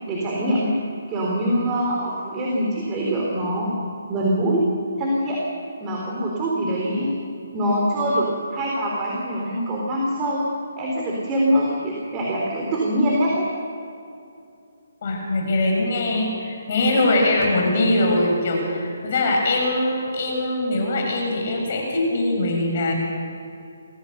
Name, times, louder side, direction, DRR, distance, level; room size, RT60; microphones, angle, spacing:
voice 1, 0.1-0.7 1.1-3.7 4.1-4.6 5.0-5.4 5.8-7.2 7.5-10.5 10.8-13.5, equal, 20° right, -3 dB, 3.7 m, -23 dB
voice 2, 15.0-22.9, left 2 dB, 50° left, 0 dB, 6.8 m, -22 dB
24.0 x 16.5 x 6.7 m, 2.5 s
figure-of-eight pair, 150°, 0 cm